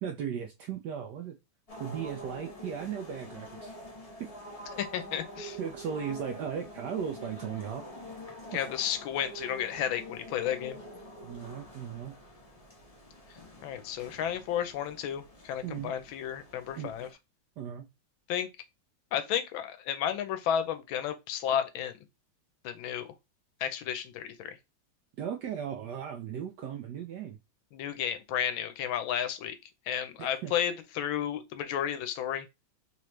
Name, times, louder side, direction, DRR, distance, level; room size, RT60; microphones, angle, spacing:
voice 1, 0.0-1.4 1.8-3.7 4.2-4.4 5.6-7.9 8.5-8.7 11.2-12.2 15.6-15.9 16.8-17.2 17.6-17.9 25.2-27.4 30.2-30.5, right 8 dB, 70° right, 1.0 m, -37 dB
sound 1, 1.7-17.1, equal, 30° left, 0.6 m, -46 dB
voice 2, 4.7-5.6 8.5-10.8 13.6-17.1 18.3-18.5 19.1-22.0 22.6-23.1 23.6-24.6 27.7-29.6 29.9-32.5, left 9 dB, 85° left, 1.4 m, -32 dB
3.8 x 3.0 x 3.1 m
omnidirectional pair, 2.1 m